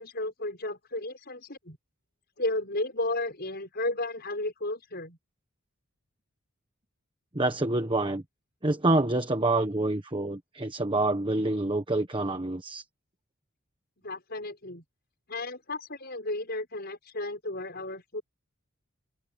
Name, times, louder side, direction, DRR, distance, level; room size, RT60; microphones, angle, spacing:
voice 1, 0.0-1.8 2.4-5.2 14.0-14.8 15.3-18.2, left 2 dB, 50° left, 6.6 m, -33 dB
voice 2, 7.3-8.2 8.6-12.8, right 2 dB, 25° right, 1.2 m, -27 dB
head